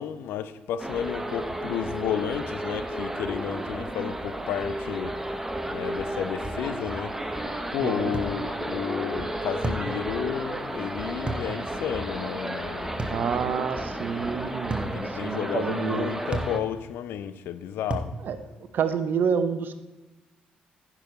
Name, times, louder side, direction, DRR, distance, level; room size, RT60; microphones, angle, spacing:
voice 1, 0.0-5.2 5.7-7.1 7.7-13.0 14.9-18.1, left 9 dB, 60° left, 0.6 m, -32 dB
sound 1, 0.8-16.6, right 1 dB, 10° right, 1.1 m, -33 dB
sound 2, 6.4-6.7 8.1-8.4 9.6-9.9 11.3-11.5 13.0-13.3 14.7-15.0 16.3-16.6 17.9-18.2, right 2 dB, 25° right, 1.4 m, -31 dB
voice 2, 7.8-8.1 13.1-16.1 18.2-19.8, right 6 dB, 50° right, 0.8 m, -29 dB
15.5 x 6.2 x 4.3 m
figure-of-eight pair, 40°, 4 cm